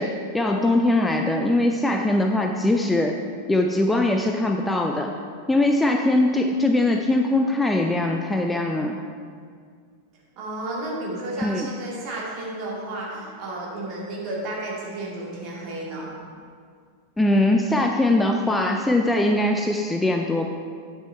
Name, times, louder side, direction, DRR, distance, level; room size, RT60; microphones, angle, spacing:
voice 1, 0.0-3.2 3.5-5.1 5.5-9.0 11.4-11.7 17.2-20.5, left 1 dB, 5° left, 3 dB, 0.4 m, -21 dB
voice 2, 10.4-16.1, right 2 dB, 40° right, -4 dB, 2.1 m, -32 dB
8.6 x 5.6 x 4.4 m, 2.1 s
figure-of-eight pair, 90°, 0 cm